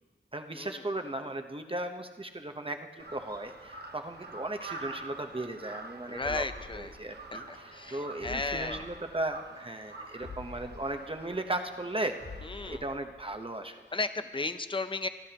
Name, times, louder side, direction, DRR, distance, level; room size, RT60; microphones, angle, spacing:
voice 1, 0.3-6.4 6.7-12.2 12.6-13.8, right 1 dB, 30° right, 5 dB, 1.0 m, -36 dB
Crow, 3.0-12.8, right 3 dB, 60° right, 1.1 m, -47 dB
voice 2, 6.1-6.9 7.3-8.9 12.4-12.8 13.9-15.1, left 3 dB, 25° left, 10 dB, 0.6 m, -34 dB
sound 1, 6.2-7.6 7.9-8.0 8.2-9.6 9.9-10.0 10.2-11.9 12.2-13.6 13.9-14.0, left 4 dB, 60° left, 1.0 m, -47 dB
27.5 x 12.0 x 3.0 m, 1.3 s
wide cardioid pair, 65°, 19 cm